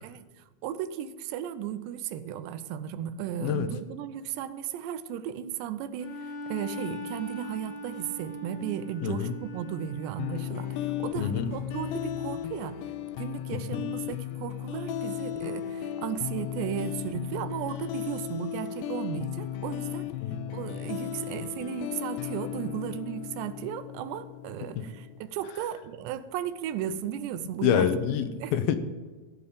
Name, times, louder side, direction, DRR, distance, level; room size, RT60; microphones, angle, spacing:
voice 1, 0.0-12.8 13.2-20.1 20.5-27.9 28.4-28.5, right 9 dB, 90° right, 13 dB, 3.0 m, -35 dB
Bowed string instrument, 6.0-10.7, left 1 dB, 40° left, 2.1 m, -40 dB
voice 2, 9.0-9.3 11.2-11.5 13.5-13.8 20.2-20.4 27.6-28.8, left 8 dB, 75° left, 9 dB, 2.4 m, -27 dB
sound 1, 10.2-25.2, left 11 dB, 90° left, 2.8 m, -35 dB
16.0 x 5.6 x 8.4 m, 1.3 s
omnidirectional pair, 4.9 m